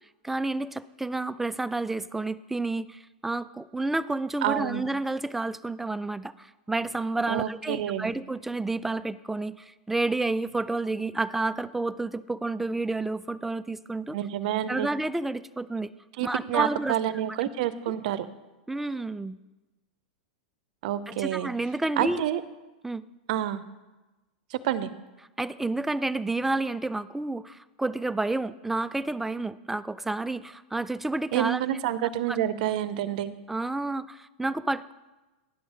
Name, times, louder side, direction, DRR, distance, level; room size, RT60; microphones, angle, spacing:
voice 1, 0.2-14.2 14.7-15.9 16.2-17.0 18.7-19.4 21.1-22.2 22.8-23.0 25.4-31.6 32.3-32.4 33.5-34.9, right 2 dB, 5° right, 14 dB, 0.3 m, -30 dB
voice 2, 4.4-4.8 7.3-8.1 14.1-14.9 16.2-18.3 20.8-21.5 22.0-22.4 23.3-23.6 24.5-24.9 31.3-33.3, right 12 dB, 65° right, 14 dB, 0.6 m, -28 dB
10.0 x 6.2 x 5.3 m, 1.1 s
hypercardioid pair, 120°, 5 cm